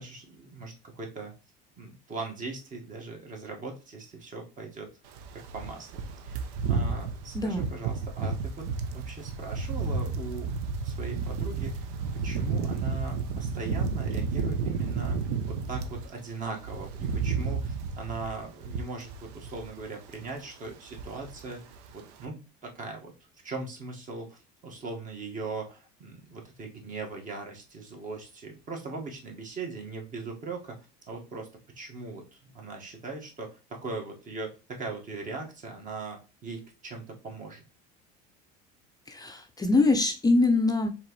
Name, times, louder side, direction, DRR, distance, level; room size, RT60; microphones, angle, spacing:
voice 1, 0.0-1.3 1.8-4.9 5.3-10.6 10.8-15.2 15.5-21.6 21.9-23.1 23.4-31.5 31.7-37.6, right 3 dB, 40° right, 2 dB, 1.6 m, -40 dB
sound 1, 5.1-16.1 16.4-19.8 20.1-20.3 20.7-21.5 21.7-21.9, right 5 dB, 80° right, 0.7 m, -32 dB
voice 2, 7.3-7.7 39.1-40.9, left 3 dB, 20° left, 5 dB, 0.6 m, -24 dB
4.8 x 3.6 x 3.1 m, 0.31 s
supercardioid pair, 105°, 21 cm